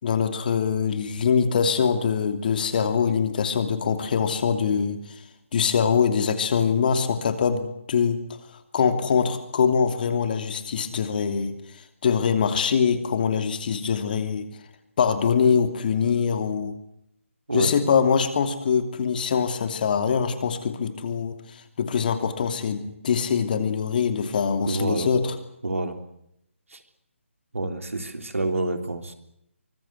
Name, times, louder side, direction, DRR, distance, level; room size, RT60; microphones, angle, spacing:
voice 1, 0.0-5.0 5.5-8.2 8.7-11.5 12.0-14.5 15.0-16.7 17.5-25.4, left 6 dB, 40° left, 8 dB, 2.9 m, -23 dB
voice 2, 24.7-25.1 25.6-26.0 26.7-26.8 27.5-29.1, right 2 dB, 80° right, 7 dB, 3.5 m, -27 dB
24.5 x 20.5 x 8.2 m, 0.76 s
figure-of-eight pair, 150°, 7 cm